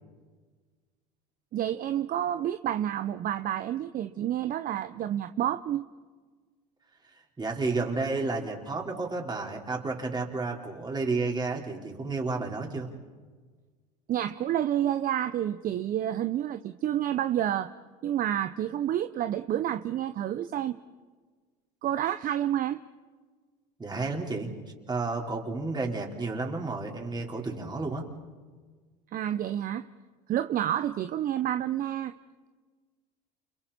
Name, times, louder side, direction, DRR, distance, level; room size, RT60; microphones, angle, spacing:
voice 1, 1.5-5.8 14.1-17.7 18.0-20.7 21.8-22.8 29.1-29.8 30.3-32.1, right 11 dB, 40° right, 11 dB, 0.9 m, -29 dB
voice 2, 7.4-12.9 23.8-24.5 24.9-28.1, right 3 dB, 20° right, 0 dB, 4.8 m, -31 dB
29.5 x 29.5 x 4.4 m, 1.4 s
hypercardioid pair, 85°, 21 cm